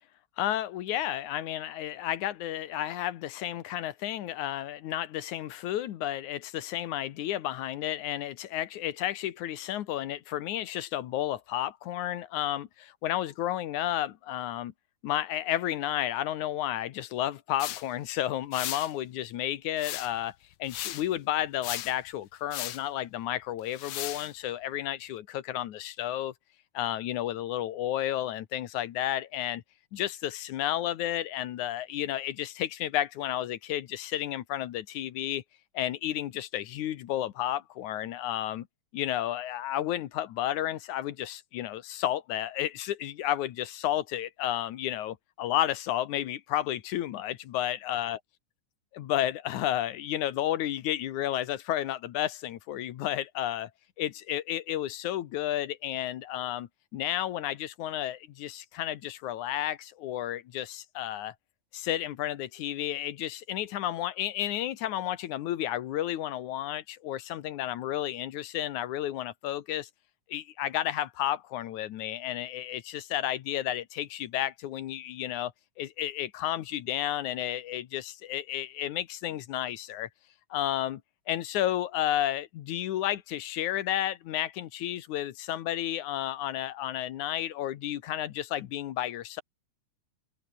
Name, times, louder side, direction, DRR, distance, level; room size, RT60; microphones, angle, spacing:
voice 1, 0.4-14.7 15.0-20.3 20.6-26.3 26.7-29.6 29.9-35.4 35.7-38.7 38.9-48.2 49.0-53.7 54.0-61.3 61.7-69.9 70.3-75.5 75.8-80.1 80.5-81.0 81.3-89.4, left 12 dB, 85° left, 2.6 m, -32 dB
sound 1, 17.6-17.8 18.5-18.9 19.8-20.2 20.7-21.1 21.6-22.0 22.5-22.8 23.7-24.3, left 13 dB, 65° left, 1.4 m, -36 dB
omnidirectional pair, 3.3 m